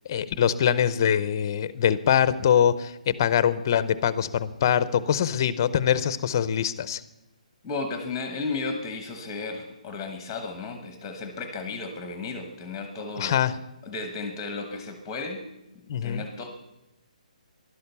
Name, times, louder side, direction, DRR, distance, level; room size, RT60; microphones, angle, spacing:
voice 1, 0.1-7.0 13.2-13.5 15.9-16.2, left 9 dB, 30° left, 15 dB, 0.7 m, -23 dB
voice 2, 7.6-13.4 13.8-15.5 15.7-16.5, left 3 dB, 10° left, 6 dB, 1.1 m, -34 dB
15.5 x 11.5 x 6.9 m, 0.95 s
hypercardioid pair, 175°, 4 cm